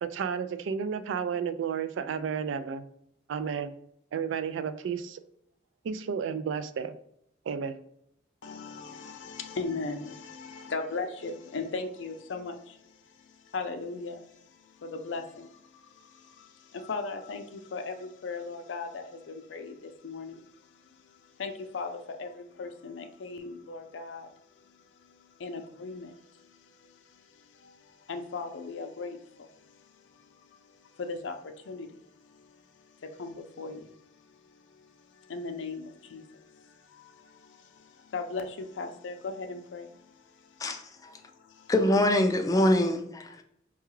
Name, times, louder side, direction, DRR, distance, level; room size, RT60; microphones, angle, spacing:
voice 1, 0.0-2.9 3.3-3.7 4.1-5.2 5.8-6.9 7.5-7.8, right 6 dB, 90° right, 0.3 m, -32 dB
voice 2, 8.4-24.3 24.6-41.7, left 4 dB, 80° left, 0.5 m, -39 dB
voice 3, 40.6-41.1 41.7-43.4, left 1 dB, 20° left, 0.3 m, -24 dB
4.6 x 2.3 x 3.0 m
head